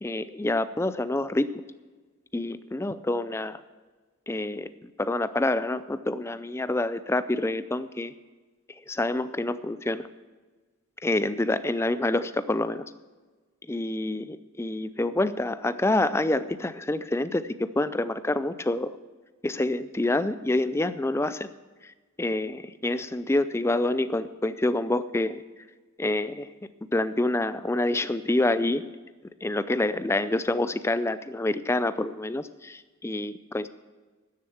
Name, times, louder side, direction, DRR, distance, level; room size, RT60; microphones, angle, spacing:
voice 1, 0.0-1.5 2.3-3.6 4.3-8.1 8.9-10.0 11.0-12.9 13.7-18.9 19.4-21.5 22.2-25.4 26.0-26.5 26.9-28.9 29.4-33.7, left 2 dB, 10° left, 13 dB, 0.4 m, -27 dB
13.0 x 7.1 x 7.1 m, 1.3 s
head